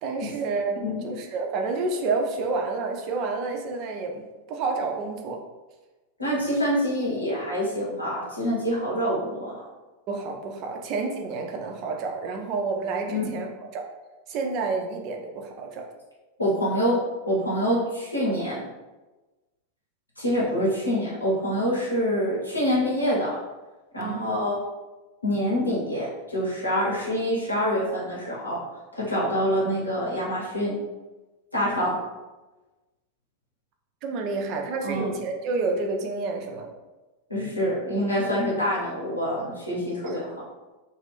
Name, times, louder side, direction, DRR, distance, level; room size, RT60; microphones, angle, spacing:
voice 1, 0.0-4.2 4.5-5.4 10.1-13.5 13.7-13.9 14.3-15.8 24.0-24.3 34.0-36.7 40.0-40.2, right 3 dB, 40° right, 2 dB, 0.4 m, -29 dB
voice 2, 6.2-9.6 13.1-13.2 16.4-17.0 17.3-18.7 20.2-23.4 23.9-24.6 25.2-28.6 28.9-30.8 31.5-32.0 34.8-35.1 37.3-40.3, equal, 85° left, -6 dB, 1.0 m, -26 dB
2.4 x 2.2 x 3.4 m, 1.2 s
figure-of-eight pair, 90°, 0 cm